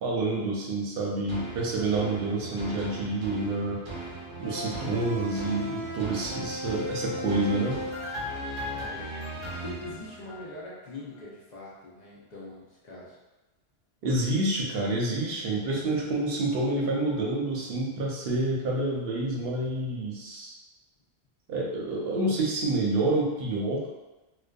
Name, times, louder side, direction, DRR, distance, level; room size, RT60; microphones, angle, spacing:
voice 1, 0.0-3.8 4.4-7.8 14.0-20.5 21.5-23.8, right 2 dB, 65° right, -2 dB, 0.8 m, -28 dB
sound 1, 1.3-10.7 11.1-11.2, equal, 35° right, 0.5 m, -36 dB
voice 2, 8.7-9.2 9.6-13.2, left 2 dB, 50° left, -6 dB, 0.6 m, -43 dB
2.5 x 2.2 x 2.2 m, 1.1 s
omnidirectional pair, 1.1 m